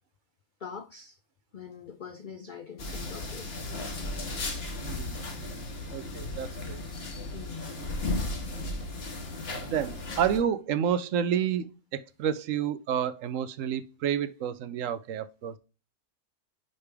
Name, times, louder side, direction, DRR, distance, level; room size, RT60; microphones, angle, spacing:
voice 1, 0.6-1.2 1.5-3.5 7.3-7.8, left 6 dB, 70° left, 0.4 m, -43 dB
sound 1, 2.8-10.4, left 2 dB, 45° left, 1.5 m, -35 dB
voice 2, 4.8-6.8 8.2-8.3 9.6-15.6, right 9 dB, 70° right, 0.9 m, -30 dB
9.5 x 3.4 x 3.4 m
omnidirectional pair, 1.5 m